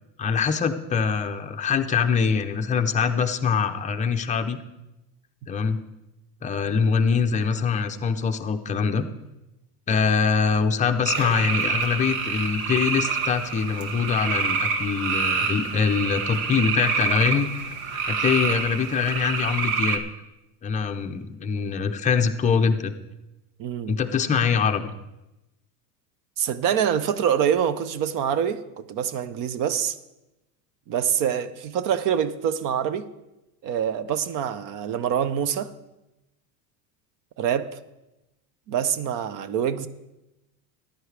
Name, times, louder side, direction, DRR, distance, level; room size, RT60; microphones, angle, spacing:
voice 1, 0.2-4.6 5.5-5.8 6.4-9.1 9.9-20.0 20.6-22.9 23.9-24.9, left 6 dB, 15° left, 6 dB, 0.5 m, -24 dB
sound 1, 11.0-20.0, right 5 dB, 85° right, 1.3 m, -27 dB
voice 2, 23.6-24.0 26.4-30.0 30.9-33.1 33.6-35.7 37.4-37.8 38.7-39.9, right 8 dB, 50° right, 15 dB, 0.6 m, -25 dB
14.5 x 10.5 x 3.3 m, 0.96 s
supercardioid pair, 135°, 43 cm